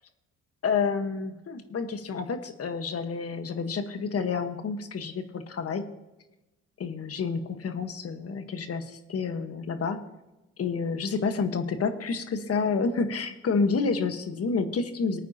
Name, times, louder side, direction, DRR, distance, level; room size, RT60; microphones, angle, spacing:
voice 1, 0.6-5.8 6.8-10.0 10.6-15.2, left 5 dB, 50° left, 8 dB, 1.4 m, -29 dB
20.5 x 9.1 x 2.9 m, 1.0 s
cardioid pair, 90°, 30 cm